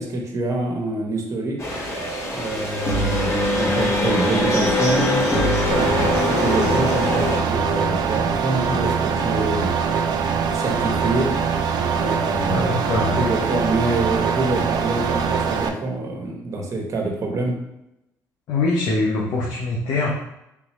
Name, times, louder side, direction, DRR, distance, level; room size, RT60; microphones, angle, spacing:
voice 1, 0.0-1.6 2.3-5.2 5.7-9.7 10.5-11.3 11.9-17.6, right 2 dB, 45° right, 0 dB, 1.0 m, -26 dB
sound 1, 1.6-7.4, left 1 dB, 40° left, 1.3 m, -22 dB
sound 2, 5.7-15.7, right 6 dB, 65° right, 0.4 m, -23 dB
voice 2, 12.5-13.5 18.5-20.1, left 3 dB, 70° left, -3 dB, 0.7 m, -23 dB
3.5 x 3.0 x 3.0 m, 0.86 s
supercardioid pair, 70°, 8 cm